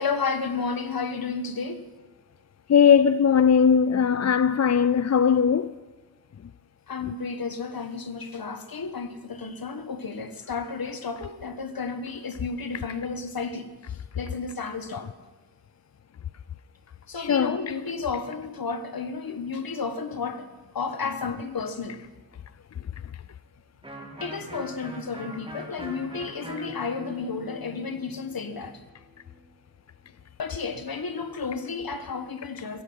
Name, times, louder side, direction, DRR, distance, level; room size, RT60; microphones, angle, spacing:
voice 1, 0.0-1.9 6.9-13.7 14.1-15.1 17.1-20.5 20.7-22.0 24.2-28.8 30.4-32.8, left 4 dB, 60° left, 1.4 m, -32 dB
voice 2, 2.7-5.7 17.2-17.6, left 7 dB, 45° left, 0.4 m, -19 dB
Electric guitar, 23.8-29.4, equal, 15° right, 2.6 m, -42 dB
16.0 x 15.5 x 5.6 m
wide cardioid pair, 105°, 39 cm